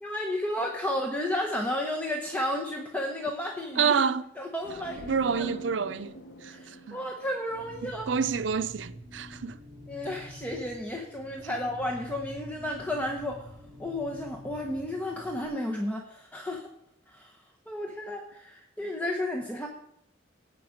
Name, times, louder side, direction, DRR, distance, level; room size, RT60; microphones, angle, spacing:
voice 1, 0.0-3.9 4.4-5.5 6.5-8.1 9.9-13.5 13.8-16.7 17.1-17.4 17.7-19.7, left 1 dB, 10° left, 1.0 m, -32 dB
voice 2, 3.8-4.2 5.1-6.1 6.4-6.6 6.9-7.0 7.8-9.6, right 6 dB, 80° right, 0.5 m, -28 dB
sound 1, 4.6-8.3, right 1 dB, 80° left, 0.9 m, -44 dB
sound 2, 7.5-15.5, equal, 25° right, 2.1 m, -46 dB
17.5 x 5.8 x 5.1 m
head